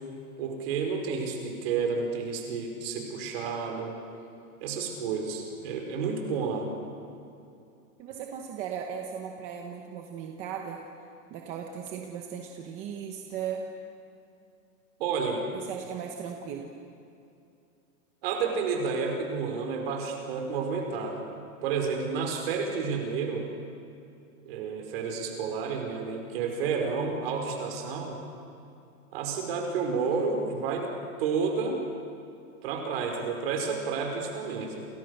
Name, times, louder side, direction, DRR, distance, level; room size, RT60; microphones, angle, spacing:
voice 1, 0.4-3.9 4.6-6.7 15.0-15.5 18.2-21.3 21.6-23.5 24.5-28.2 29.1-30.9 31.2-31.8 32.6-34.9, right 5 dB, 40° right, 2 dB, 5.3 m, -30 dB
voice 2, 8.0-10.8 11.3-13.7 15.5-16.7, right 7 dB, 15° right, 2 dB, 0.9 m, -37 dB
30.0 x 28.0 x 6.7 m, 2.6 s
supercardioid pair, 180°, 45 cm